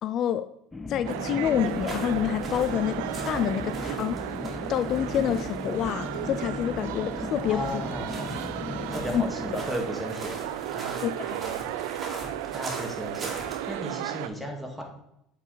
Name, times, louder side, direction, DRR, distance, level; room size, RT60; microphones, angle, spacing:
voice 1, 0.0-0.5 0.9-4.3 4.7-7.8 9.1-9.2 11.0-11.1, left 10 dB, 55° left, 12 dB, 0.3 m, -27 dB
sound 1, 0.7-9.6, left 3 dB, 15° left, 0.6 m, -37 dB
sound 2, 1.1-14.3, right 12 dB, 80° right, 0.4 m, -34 dB
sound 3, 1.6-13.8, right 1 dB, 25° right, 2.3 m, -42 dB
voice 2, 7.5-8.4 8.9-10.4 10.7-11.7 12.5-13.4 13.6-14.8, equal, ahead, 0 dB, 2.0 m, -35 dB
7.8 x 4.6 x 3.9 m, 0.80 s
hypercardioid pair, 80°, 0 cm